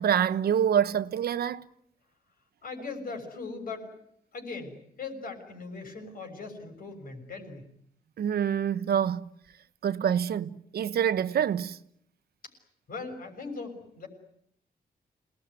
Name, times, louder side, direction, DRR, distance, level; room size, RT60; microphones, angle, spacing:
voice 1, 0.0-1.7 8.2-9.3 9.8-11.8, right 9 dB, 75° right, 1.0 m, -26 dB
voice 2, 2.6-3.9 4.3-7.7 12.9-14.1, left 4 dB, 65° left, 6.6 m, -39 dB
28.0 x 19.5 x 9.7 m
wide cardioid pair, 155°, 16 cm